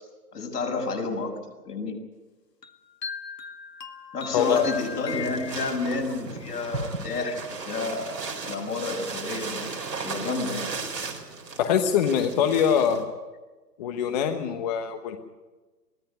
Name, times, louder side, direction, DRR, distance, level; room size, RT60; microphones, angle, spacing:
voice 1, 0.3-1.4 1.6-2.0 4.1-8.1 8.4-9.7 10.0-10.7, left 3 dB, 75° left, 1 dB, 6.7 m, -30 dB
sound 1, 2.6-6.1, left 6 dB, 90° left, 2.1 m, -39 dB
voice 2, 4.3-4.6 11.6-13.1 13.8-15.2, left 8 dB, 25° left, 7 dB, 1.2 m, -23 dB
sound 2, 4.4-13.0, right 4 dB, 85° right, 4.4 m, -36 dB
23.0 x 15.0 x 9.6 m, 1.2 s
hypercardioid pair, 145°, 48 cm